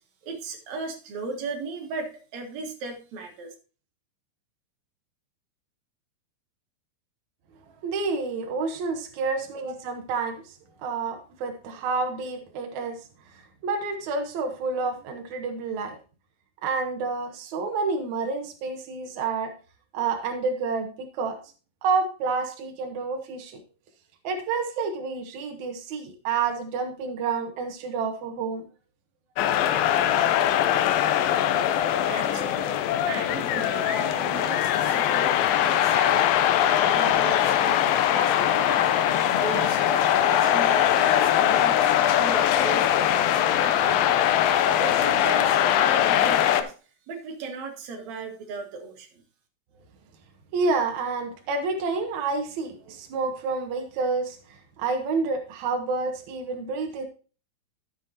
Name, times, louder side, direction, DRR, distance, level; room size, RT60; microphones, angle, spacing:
voice 1, 0.2-3.5 32.0-32.6 33.0-35.4 35.6-36.5 36.9-38.8 39.4-42.9 43.1-44.1 44.7-46.7 47.1-49.2, right 4 dB, 55° right, 1 dB, 2.4 m, -36 dB
voice 2, 7.8-10.4 10.8-13.0 13.3-16.0 16.6-19.5 19.9-21.4 21.8-23.6 24.2-28.6 50.5-57.1, right 4 dB, 80° right, 4 dB, 1.6 m, -29 dB
sound 1, 29.4-46.6, left 11 dB, 80° left, 2.1 m, -22 dB
12.5 x 7.6 x 2.8 m, 0.36 s
omnidirectional pair, 4.9 m